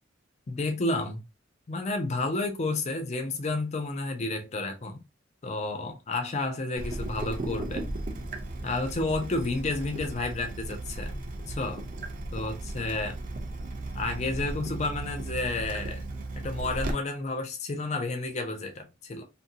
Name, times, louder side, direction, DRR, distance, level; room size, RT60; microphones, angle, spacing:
voice 1, 0.5-1.2 1.7-5.0 5.4-7.8 8.6-11.2 11.5-13.2 13.9-16.0 16.4-19.2, left 2 dB, 35° left, 0.4 m, -31 dB
Water tap faucet / Drip, 6.8-16.9, right 2 dB, 45° right, 0.6 m, -36 dB
2.7 x 2.5 x 2.6 m
head